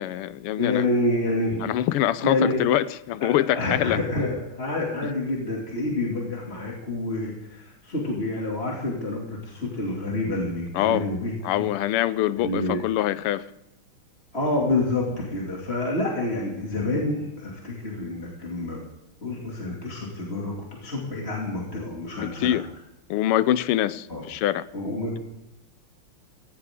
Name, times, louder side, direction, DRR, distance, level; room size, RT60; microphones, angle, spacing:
voice 1, 0.0-0.8 1.6-4.0 10.7-11.1 11.4-13.5 22.2-22.7 23.1-24.7, left 13 dB, 90° left, 1.6 m, -24 dB
voice 2, 0.6-1.7 2.2-2.6 3.2-11.7 12.4-12.8 14.3-18.8 19.2-22.6 24.1-24.2 24.7-25.2, left 2 dB, 30° left, 2.8 m, -28 dB
16.5 x 16.5 x 3.7 m
omnidirectional pair, 2.4 m